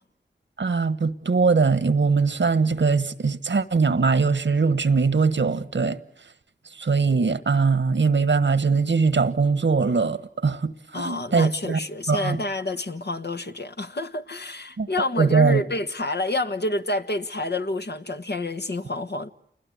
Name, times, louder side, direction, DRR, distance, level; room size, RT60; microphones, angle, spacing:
voice 1, 0.6-6.0 6.8-11.8 12.1-12.4 14.8-15.6, right 4 dB, 85° right, 1.4 m, -21 dB
voice 2, 10.9-19.3, left 2 dB, 65° left, 1.6 m, -28 dB
29.0 x 21.0 x 9.5 m
wide cardioid pair, 50°, 18 cm